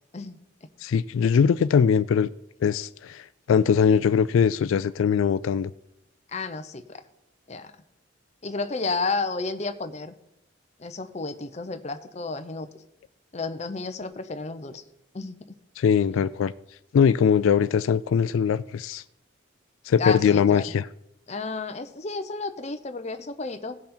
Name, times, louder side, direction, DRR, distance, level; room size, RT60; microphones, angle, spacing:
voice 1, 0.8-2.3 2.6-5.7 15.8-16.5 16.9-19.0 19.9-20.9, left 7 dB, 85° left, 0.3 m, -21 dB
voice 2, 6.3-7.0 7.5-7.7 8.4-10.1 10.8-12.7 13.3-14.8 15.1-15.5 20.0-20.6 21.3-23.8, left 3 dB, 35° left, 0.7 m, -32 dB
17.0 x 5.8 x 4.3 m
head